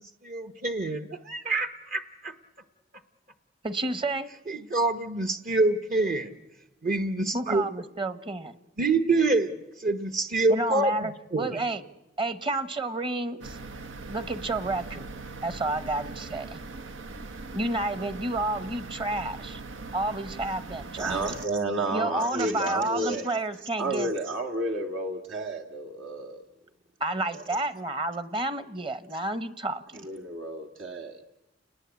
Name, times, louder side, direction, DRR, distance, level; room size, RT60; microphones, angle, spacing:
voice 1, 0.2-2.3 4.5-6.3 6.8-7.6 8.8-9.5 9.8-10.9 11.3-11.6, right 2 dB, 50° right, 7 dB, 1.1 m, -26 dB
voice 2, 3.6-4.3 7.3-8.6 10.5-11.8 12.2-13.6 14.1-15.1 15.4-16.6 17.5-19.6 19.9-21.2 21.9-24.1 27.0-30.0, right 2 dB, 25° right, 13 dB, 1.1 m, -30 dB
sound 1, 13.4-21.5, right 3 dB, 90° right, 1.3 m, -41 dB
voice 3, 21.0-23.3 23.8-26.4 27.3-27.4 30.0-31.2, right 2 dB, 75° right, 1 dB, 1.8 m, -31 dB
30.0 x 20.0 x 8.3 m, 0.98 s
head